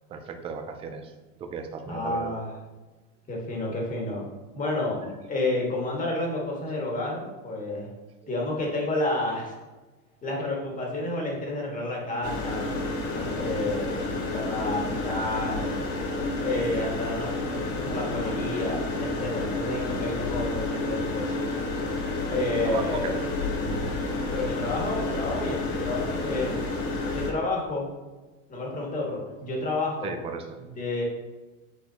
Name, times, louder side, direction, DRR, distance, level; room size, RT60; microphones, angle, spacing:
voice 1, 0.1-1.1 1.4-2.3 22.3-22.8 23.1-23.3 30.0-30.5, right 5 dB, 15° right, 6 dB, 0.4 m, -35 dB
voice 2, 1.8-2.5 3.3-4.3 4.5-7.9 8.3-9.5 10.2-12.8 13.1-15.8 16.4-21.3 22.3-23.1 24.3-26.6 27.1-27.9 28.5-30.2 30.6-31.0, left 2 dB, 20° left, -2 dB, 1.6 m, -30 dB
sound 1, 12.2-27.3, left 2 dB, 50° left, 2.0 m, -30 dB
8.2 x 4.3 x 2.8 m, 1.2 s
supercardioid pair, 135°, 40 cm